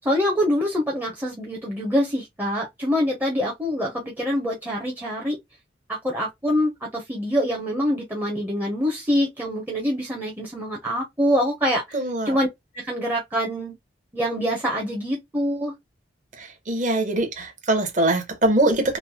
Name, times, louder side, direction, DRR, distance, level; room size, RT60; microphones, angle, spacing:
voice 1, 0.0-5.4 5.9-12.5 12.7-13.8 14.1-15.7, equal, 10° right, 0.5 m, -25 dB
voice 2, 11.9-12.4 16.7-19.0, right 1 dB, 40° right, 0.8 m, -22 dB
3.0 x 2.0 x 2.6 m
head